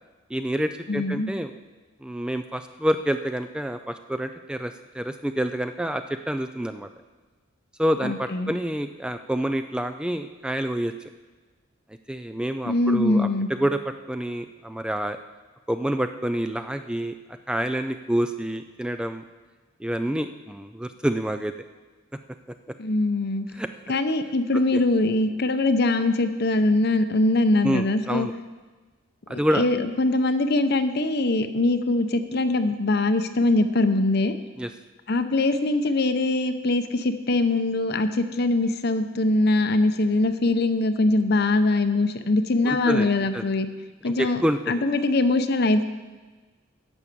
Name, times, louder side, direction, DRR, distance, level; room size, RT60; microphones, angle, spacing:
voice 1, 0.3-1.5 2.0-6.9 7.8-10.9 12.1-13.8 14.1-15.2 15.7-19.2 19.8-21.5 23.6-24.0 24.7-24.8 27.6-28.3 29.3-29.6 34.6-34.7 42.6-43.5 44.0-44.9, right 1 dB, 5° right, 8 dB, 0.3 m, -28 dB
voice 2, 0.9-1.3 8.0-8.5 12.6-13.5 22.8-23.5 23.9-28.3 29.3-34.3 35.1-43.7 44.0-44.4 44.7-45.8, left 2 dB, 55° left, 10 dB, 0.7 m, -22 dB
11.0 x 7.2 x 6.9 m, 1.3 s
head